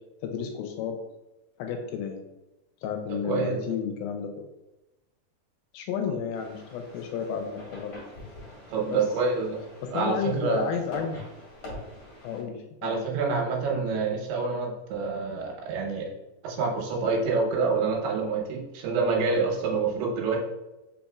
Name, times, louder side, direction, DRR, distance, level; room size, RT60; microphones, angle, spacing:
voice 1, 0.2-1.0 1.6-2.2 2.8-4.5 5.7-7.9 8.9-9.0 9.8-11.2 12.2-12.9, left 7 dB, 80° left, 4 dB, 2.3 m, -32 dB
voice 2, 3.2-3.7 8.7-9.6 9.9-10.8 12.8-16.1 16.4-20.4, right 4 dB, 85° right, 0 dB, 2.9 m, -27 dB
sound 1, 6.3-12.4, left 1 dB, 50° left, 1.7 m, -45 dB
5.3 x 4.1 x 2.3 m, 0.98 s
omnidirectional pair, 4.5 m